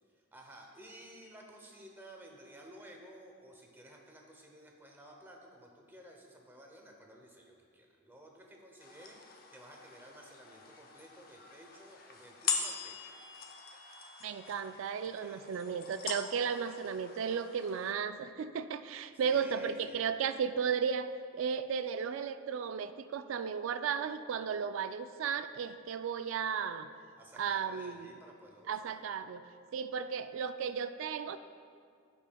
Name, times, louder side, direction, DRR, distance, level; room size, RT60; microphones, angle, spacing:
voice 1, 0.1-13.0 15.2-15.4 19.1-20.1 27.2-29.2, right 1 dB, 10° right, 0 dB, 0.7 m, -54 dB
sound 1, 8.8-17.9, left 5 dB, 45° left, 0.6 m, -42 dB
voice 2, 14.2-26.9 27.4-28.1 28.7-29.4 29.7-31.4, right 6 dB, 65° right, 11 dB, 0.3 m, -35 dB
14.5 x 5.4 x 2.3 m, 2.2 s
head